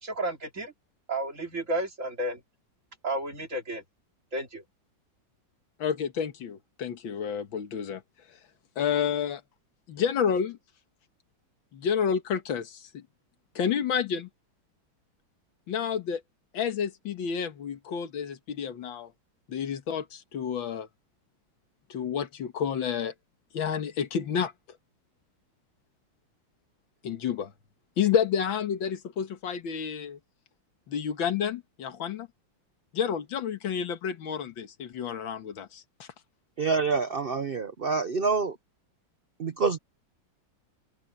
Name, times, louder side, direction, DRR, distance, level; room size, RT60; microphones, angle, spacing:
voice 1, 0.0-0.7 1.1-2.4 3.0-3.8 4.3-4.6, right 1 dB, 40° right, 3.1 m, -32 dB
voice 2, 5.8-8.0 8.8-9.4 9.9-10.6 11.7-13.0 13.6-14.3 15.7-16.2 16.5-19.1 19.5-20.9 21.9-23.1 23.5-24.5 27.0-27.5 28.0-30.2 30.9-32.3 32.9-36.1, left 7 dB, 85° left, 2.2 m, -30 dB
voice 3, 36.6-38.6 39.4-39.8, right 4 dB, 60° right, 0.6 m, -27 dB
open air
omnidirectional pair, 2.1 m